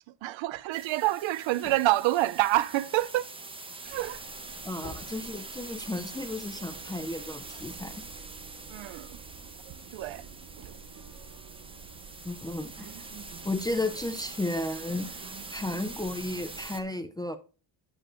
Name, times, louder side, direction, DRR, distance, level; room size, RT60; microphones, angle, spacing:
voice 1, 0.2-3.3 3.8-4.2 8.7-9.2 9.9-10.2, right 16 dB, 80° right, 0.5 m, -27 dB
sound 1, 0.7-16.8, right 3 dB, 10° right, 0.9 m, -44 dB
sound 2, 1.1-3.3 3.8-6.0, left 2 dB, 60° left, 3.3 m, -48 dB
sound 3, 3.8-16.8, right 6 dB, 50° right, 0.9 m, -49 dB
voice 2, 4.6-7.9 12.2-13.1 13.4-15.1 15.5-17.4, left 2 dB, 10° left, 0.3 m, -33 dB
8.9 x 6.5 x 2.5 m
cardioid pair, 145°, 46 cm